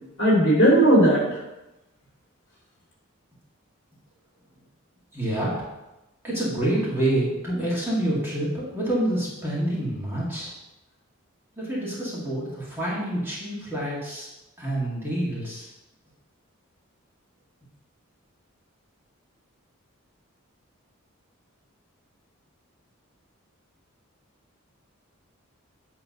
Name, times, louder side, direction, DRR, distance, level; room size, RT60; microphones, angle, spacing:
voice 1, 0.2-1.4, right 1 dB, 55° left, -3 dB, 3.0 m, -17 dB
voice 2, 5.1-5.7 6.2-10.5 11.6-14.3 14.6-15.7, right 1 dB, 10° right, -8 dB, 2.2 m, -27 dB
8.9 x 3.8 x 5.3 m, 0.97 s
head